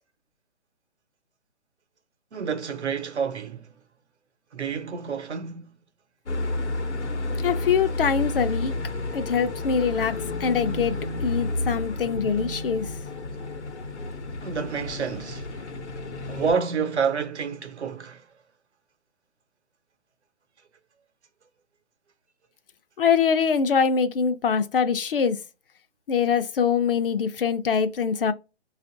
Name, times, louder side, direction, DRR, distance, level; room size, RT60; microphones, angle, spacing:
voice 1, 2.3-3.7 4.5-5.8 9.9-10.2 14.4-15.5 16.3-18.3, right 6 dB, 80° right, 0.8 m, -29 dB
sound 1, 6.3-16.5, left 2 dB, 85° left, 0.9 m, -31 dB
voice 2, 7.4-8.7 9.1-10.1 10.4-10.9 11.2-12.8 23.0-25.4 26.1-28.3, left 6 dB, 55° left, 0.5 m, -23 dB
5.2 x 2.5 x 2.5 m
hypercardioid pair, 145°, 34 cm